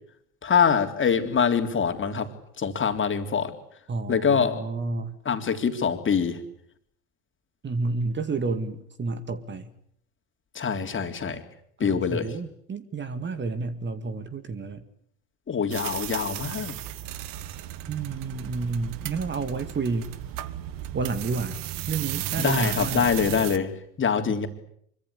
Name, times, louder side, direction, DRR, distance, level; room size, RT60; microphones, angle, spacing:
voice 1, 0.4-2.3 2.6-3.5 4.1-4.6 5.3-6.4 10.6-11.4 11.8-12.3 15.5-16.7 22.4-23.7 24.0-24.5, left 6 dB, 30° left, 6 dB, 3.5 m, -24 dB
voice 2, 3.9-5.2 7.6-9.7 11.8-14.8 17.9-20.1 20.9-21.6 21.9-23.0 24.3-24.4, right 4 dB, 25° right, 11 dB, 2.1 m, -30 dB
sound 1, 15.7-23.6, right 13 dB, 50° right, 1.6 m, -34 dB
25.5 x 24.0 x 8.5 m, 0.70 s
figure-of-eight pair, 70°, 42 cm